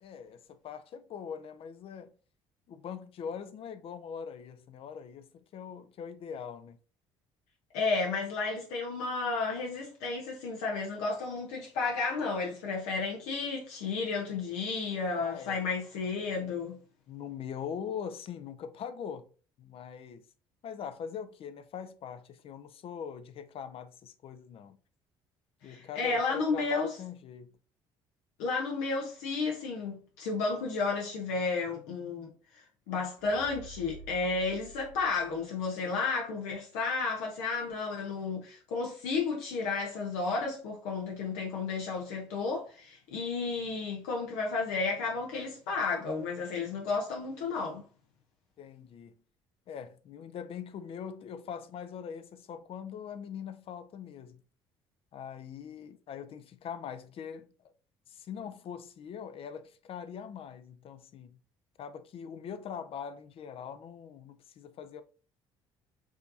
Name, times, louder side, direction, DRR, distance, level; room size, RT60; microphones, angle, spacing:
voice 1, 0.0-2.1 2.7-6.8 15.1-15.6 17.1-19.3 19.6-20.3 20.6-24.8 25.6-27.5 48.6-49.2 49.7-54.4 55.1-57.5 58.1-61.4 61.8-65.0, left 7 dB, 55° left, 0.5 m, -42 dB
voice 2, 7.7-16.8 25.6-26.9 28.4-32.3 32.9-47.8, left 4 dB, 80° left, 0.8 m, -32 dB
sound 1, 33.1-35.8 36.2-36.3, right 2 dB, 65° right, 1.3 m, -50 dB
4.8 x 2.7 x 2.6 m
hypercardioid pair, 65°, 12 cm